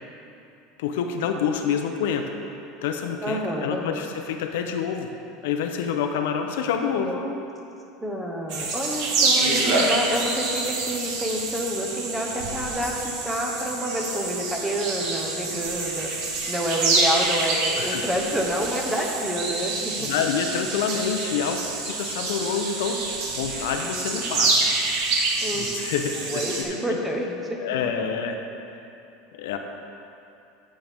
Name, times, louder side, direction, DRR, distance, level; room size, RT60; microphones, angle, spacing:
voice 1, 0.8-2.3 2.8-5.1 5.4-7.1 15.5-15.6 17.8-18.0 20.0-23.0 23.3-24.7 25.5-27.0 27.6-28.4 29.3-29.6, left 7 dB, 80° left, 5 dB, 0.7 m, -27 dB
voice 2, 3.2-4.0 6.9-7.5 8.0-20.1 25.4-25.7 26.3-27.6, equal, 5° right, 0 dB, 1.0 m, -28 dB
sound 1, 8.5-26.6, right 3 dB, 55° right, 1.3 m, -27 dB
11.0 x 7.5 x 3.6 m, 2.8 s
supercardioid pair, 150°, 0 cm